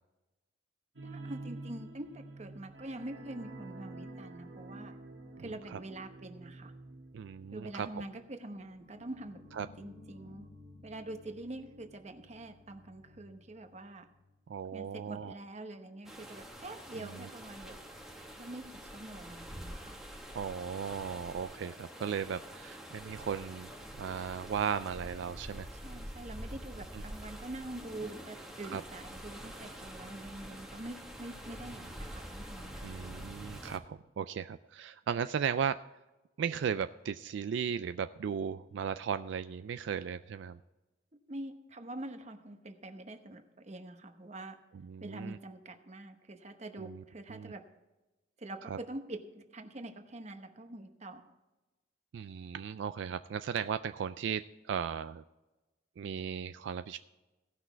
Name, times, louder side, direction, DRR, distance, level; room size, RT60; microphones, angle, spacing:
voice 1, 1.0-4.9 5.4-6.7 7.5-9.4 9.8-10.5 10.8-14.1 14.7-17.8 18.4-20.0 25.7-33.1 41.3-44.6 45.0-47.7 48.4-51.3, right 1 dB, 35° right, 7 dB, 0.9 m, -45 dB
sound 1, 1.0-14.2 14.5-14.7 15.1-15.2, right 2 dB, 85° right, 1.8 m, -50 dB
voice 2, 5.4-5.8 7.1-7.9 9.6-9.7 14.5-15.3 17.0-17.3 20.3-23.7 24.0-25.7 28.7-28.8 32.8-35.8 36.4-40.6 44.8-45.4 46.8-47.0 47.3-47.5 48.7-48.8 52.1-55.2 56.0-57.0, right 7 dB, 70° right, 12 dB, 0.3 m, -36 dB
sound 2, 16.0-33.8, equal, ahead, 1.1 m, -46 dB
17.0 x 6.1 x 4.4 m, 1.1 s
head